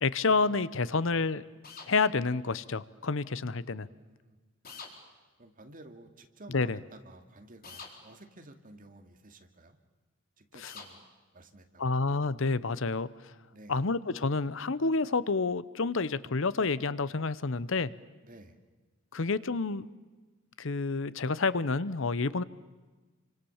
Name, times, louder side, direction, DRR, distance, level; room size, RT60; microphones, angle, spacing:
voice 1, 0.0-1.4 1.9-3.9 6.5-6.8 10.6-10.7 11.8-13.1 13.7-17.9 19.1-19.9 20.6-22.4, left 4 dB, 65° left, 17 dB, 0.8 m, -29 dB
sound 1, 1.6-1.9 4.6-4.9 7.6-7.9 10.6-10.9, left 5 dB, 45° left, 4.5 m, -45 dB
voice 2, 3.9-4.4 5.4-9.8 10.4-11.1 11.3-12.0 13.5-13.8 18.2-18.6, right 2 dB, 40° right, 6 dB, 2.3 m, -53 dB
29.5 x 25.5 x 7.2 m, 1.3 s
head